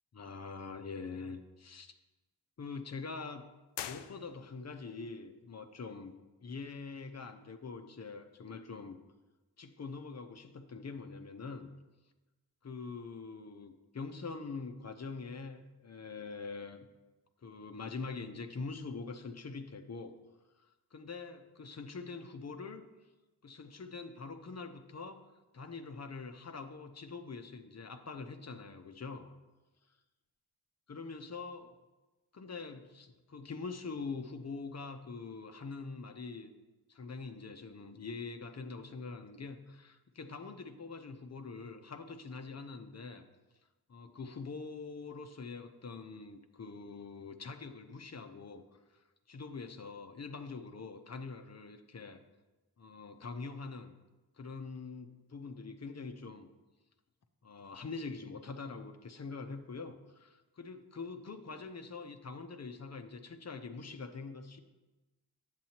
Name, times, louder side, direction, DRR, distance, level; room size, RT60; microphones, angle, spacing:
voice 1, 0.1-1.9 2.6-3.5 3.8-6.1 6.4-9.0 9.6-11.7 12.6-16.9 17.4-20.1 20.6-20.7 20.9-22.9 23.4-25.2 25.5-29.3 30.9-31.8 32.3-36.5 36.9-43.2 43.9-48.8 49.3-52.2 52.8-53.9 54.4-56.5 57.4-64.6, left 4 dB, 40° left, 6 dB, 0.8 m, -44 dB
sound 1, 3.7-4.8, left 10 dB, 85° left, 0.5 m, -44 dB
9.1 x 7.5 x 2.9 m, 1.1 s
supercardioid pair, 45°, 41 cm